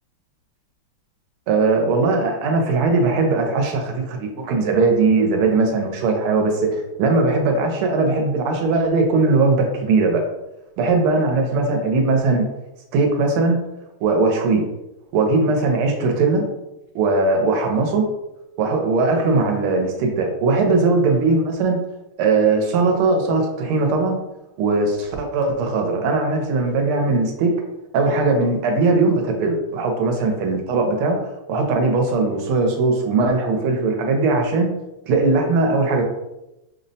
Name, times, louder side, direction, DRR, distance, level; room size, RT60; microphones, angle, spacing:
voice 1, 1.5-10.3 10.8-12.5 12.9-13.6 14.0-14.7 15.1-16.4 16.9-18.1 18.6-21.8 22.2-24.2 24.6-27.5 27.9-31.2 31.5-34.7 35.1-36.0, right 3 dB, 85° right, 3 dB, 1.5 m, -19 dB
5.4 x 2.0 x 2.6 m, 0.95 s
omnidirectional pair, 2.3 m